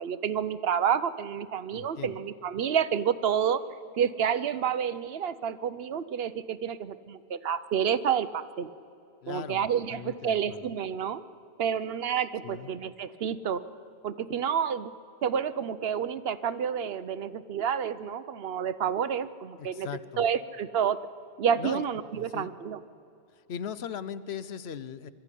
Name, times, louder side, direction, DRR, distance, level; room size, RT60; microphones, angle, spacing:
voice 1, 0.0-3.6 4.0-8.7 9.3-11.2 11.6-13.6 14.0-14.9 15.2-19.9 20.2-21.0 21.4-22.8, right 8 dB, 65° right, 14 dB, 0.9 m, -29 dB
voice 2, 1.7-2.3 9.2-10.7 12.4-12.7 19.6-20.3 21.6-21.8 22.1-22.5 23.3-25.1, left 8 dB, 70° left, 15 dB, 0.9 m, -39 dB
22.5 x 13.0 x 9.9 m, 2.6 s
omnidirectional pair, 1.1 m